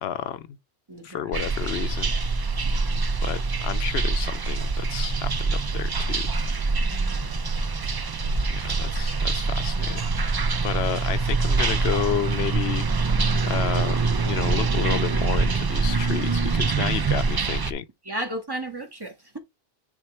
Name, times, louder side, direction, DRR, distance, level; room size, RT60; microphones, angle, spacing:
voice 1, 0.0-0.6 1.0-2.2 3.2-6.3 8.5-12.8 13.5-17.8, left 9 dB, 80° left, 0.8 m, -31 dB
voice 2, 0.9-1.3 2.6-3.1 6.8-7.3 18.0-19.4, right 1 dB, 20° right, 1.8 m, -35 dB
sound 1, 1.3-17.7, right 4 dB, 40° right, 0.3 m, -24 dB
9.6 x 3.7 x 3.2 m
omnidirectional pair, 1.0 m